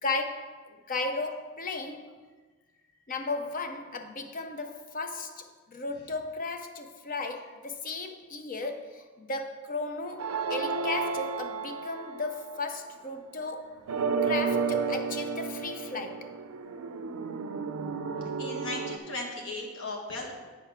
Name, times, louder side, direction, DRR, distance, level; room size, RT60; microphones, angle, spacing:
voice 1, 0.0-2.1 3.1-13.7 14.2-16.3, left 3 dB, 40° left, 0.6 m, -35 dB
sound 1, 10.2-12.7 13.9-19.0, right 5 dB, 85° right, 0.5 m, -32 dB
voice 2, 18.4-20.3, left 2 dB, 65° left, 1.5 m, -36 dB
7.7 x 4.6 x 5.8 m
head